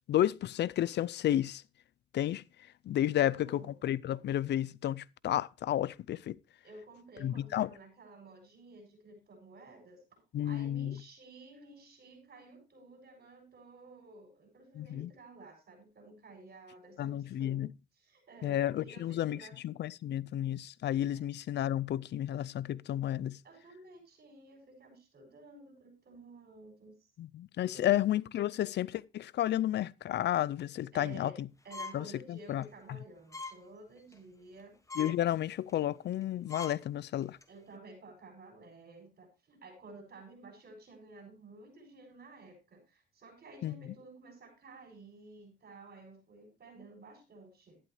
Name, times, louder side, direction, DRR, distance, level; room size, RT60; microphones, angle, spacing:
voice 1, 0.0-1.6 2.1-2.4 2.9-6.4 7.2-7.7 10.3-11.0 14.8-15.1 17.0-17.7 18.4-19.4 19.6-23.4 27.2-31.5 31.9-32.6 35.0-37.4 43.6-43.7, left 12 dB, 60° left, 0.5 m, -32 dB
voice 2, 3.1-3.8 6.6-17.7 17.9-19.5 21.1-21.3 23.4-27.0 27.7-28.0 30.9-34.8 37.5-47.8, right 2 dB, 50° right, 6.8 m, -53 dB
sound 1, 31.7-32.1 32.5-32.6 33.3-33.6 34.0-34.2 34.6-34.7 34.9-35.2 35.7-35.8 36.2-36.3 36.5-36.8 37.2-37.4, left 3 dB, 15° left, 1.3 m, -42 dB
12.0 x 11.0 x 3.1 m
cardioid pair, 90°, 20 cm